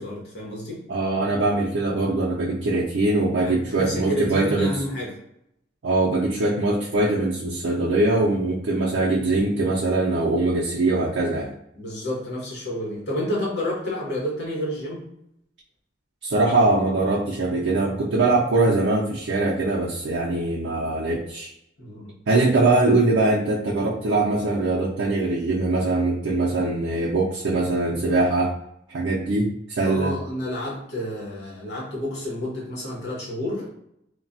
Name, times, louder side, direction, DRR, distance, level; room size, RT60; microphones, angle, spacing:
voice 1, 0.0-0.8 3.4-5.1 11.7-15.0 21.8-22.1 29.8-33.7, left 1 dB, 65° left, -4 dB, 1.1 m, -30 dB
voice 2, 0.9-4.8 5.8-11.5 16.2-21.5 22.3-28.5 28.9-30.2, right 2 dB, 85° right, -3 dB, 0.5 m, -22 dB
3.1 x 2.2 x 2.5 m, 0.78 s
head